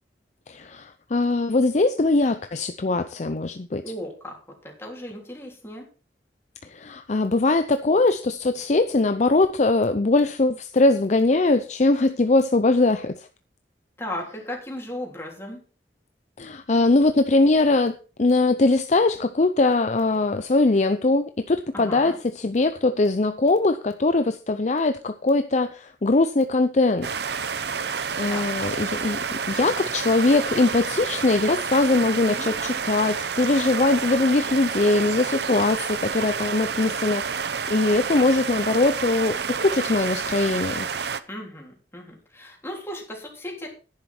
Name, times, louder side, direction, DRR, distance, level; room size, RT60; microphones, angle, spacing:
voice 1, 0.5-3.8 6.6-13.3 16.4-27.1 28.2-29.2 29.5-37.3 37.7-40.9, left 2 dB, 40° left, 9 dB, 0.6 m, -21 dB
voice 2, 3.8-4.4 4.6-5.9 14.0-15.6 21.7-22.2 28.3-28.5 32.2-32.5 41.3-43.7, left 1 dB, 15° left, 0 dB, 3.4 m, -36 dB
sound 1, 27.0-41.2, right 6 dB, 65° right, 0.7 m, -29 dB
10.5 x 10.5 x 4.4 m, 0.36 s
head